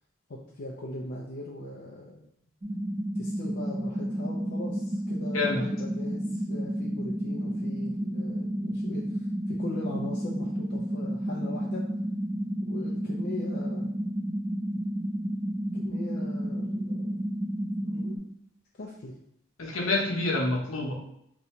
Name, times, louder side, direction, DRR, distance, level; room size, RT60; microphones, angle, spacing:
voice 1, 0.3-2.3 3.2-11.9 12.7-13.9 15.7-17.1 17.8-18.3 18.8-19.2, left 2 dB, 50° left, -3 dB, 0.4 m, -40 dB
sound 1, 2.6-18.2, right 1 dB, 20° right, 0.4 m, -31 dB
voice 2, 19.6-20.9, left 2 dB, 75° left, -2 dB, 0.9 m, -27 dB
2.7 x 2.6 x 4.3 m, 0.75 s
head